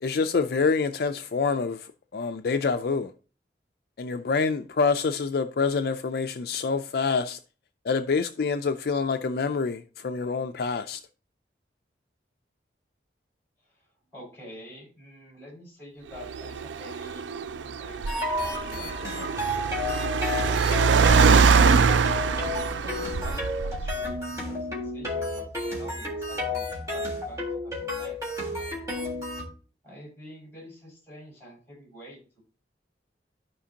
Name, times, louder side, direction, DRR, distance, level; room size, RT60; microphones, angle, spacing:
voice 1, 0.0-3.1 4.0-7.4 7.8-11.0, left 4 dB, 55° left, 0.4 m, -26 dB
voice 2, 13.6-17.2 17.6-20.8 21.3-21.8 22.1-28.2 28.5-28.9 29.8-32.2, equal, 15° left, 5.3 m, -47 dB
Car, 16.2-24.1, right 5 dB, 85° right, 0.4 m, -23 dB
sound 1, 18.1-29.4, left 2 dB, 20° right, 3.5 m, -32 dB
14.0 x 5.1 x 2.8 m
head